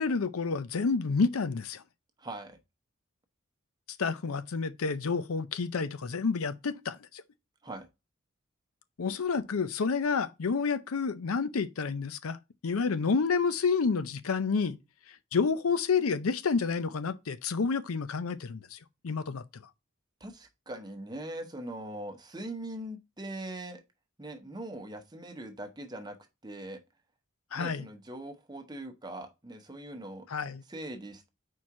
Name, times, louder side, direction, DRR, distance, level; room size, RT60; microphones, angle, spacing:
voice 1, 0.0-1.8 4.0-7.2 9.0-12.4 12.6-14.8 15.3-18.8 19.0-19.4 27.5-27.9 30.3-30.6, left 5 dB, 90° left, 0.6 m, -29 dB
voice 2, 2.2-2.6 7.6-7.9 20.2-23.8 24.2-26.2 26.4-26.8 27.5-30.3 30.7-31.3, right 1 dB, 20° right, 0.8 m, -41 dB
4.7 x 4.4 x 4.7 m
head